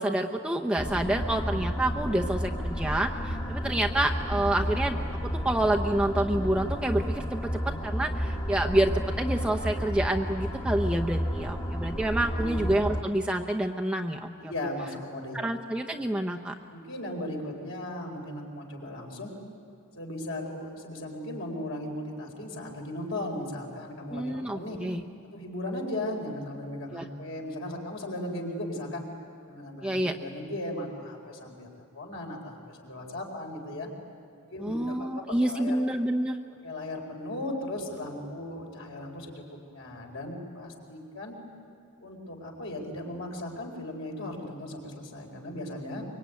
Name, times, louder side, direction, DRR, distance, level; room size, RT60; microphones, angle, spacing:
voice 1, 0.0-14.3 15.3-16.5 24.1-25.0 26.9-27.0 29.8-30.1 34.6-36.4, right 1 dB, 5° right, 1 dB, 0.7 m, -28 dB
sound 1, 0.8-13.0, equal, 20° left, 1.5 m, -31 dB
voice 2, 12.2-12.6 14.5-15.4 16.7-19.3 19.9-24.8 25.3-29.1 29.5-33.9 34.5-35.8 36.6-41.3 42.0-46.1, left 1 dB, 60° left, 1 dB, 4.5 m, -37 dB
24.5 x 24.0 x 9.5 m, 2.5 s
head